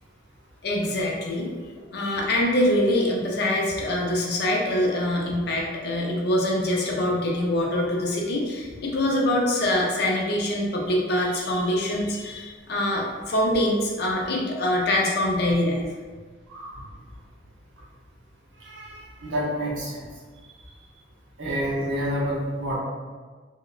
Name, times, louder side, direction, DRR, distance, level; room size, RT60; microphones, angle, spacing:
voice 1, 0.6-1.5 1.9-15.8, left 1 dB, 55° left, -2 dB, 0.5 m, -24 dB
voice 2, 18.6-20.0 21.4-22.8, equal, 80° right, -4 dB, 0.8 m, -29 dB
2.8 x 2.1 x 2.4 m, 1.4 s
head